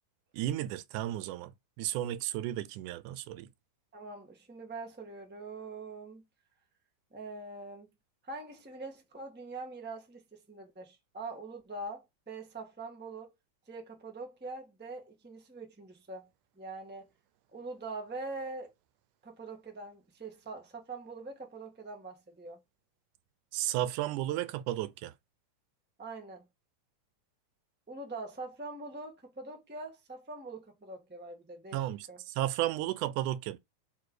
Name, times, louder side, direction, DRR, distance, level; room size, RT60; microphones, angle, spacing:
voice 1, 0.3-1.5 1.8-3.5 23.5-25.1 31.7-33.6, right 14 dB, 90° right, 2.1 m, -33 dB
voice 2, 3.9-6.2 7.1-7.9 8.2-13.3 13.7-16.3 16.6-17.1 17.5-18.7 19.2-22.6 26.0-26.4 27.9-32.2, right 3 dB, 5° right, 0.7 m, -43 dB
4.9 x 4.7 x 6.1 m
omnidirectional pair, 3.5 m